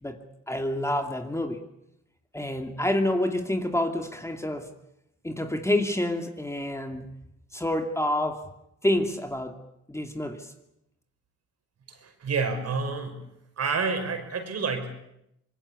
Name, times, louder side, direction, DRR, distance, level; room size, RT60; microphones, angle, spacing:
voice 1, 0.0-1.6 2.3-4.7 5.2-7.2 7.5-8.4 8.8-9.6 9.9-10.5, left 1 dB, 10° left, 5 dB, 2.5 m, -28 dB
voice 2, 11.9-13.2 13.6-15.0, right 4 dB, 55° right, 6 dB, 5.7 m, -29 dB
25.0 x 21.5 x 8.5 m, 0.81 s
cardioid pair, 90°, 30 cm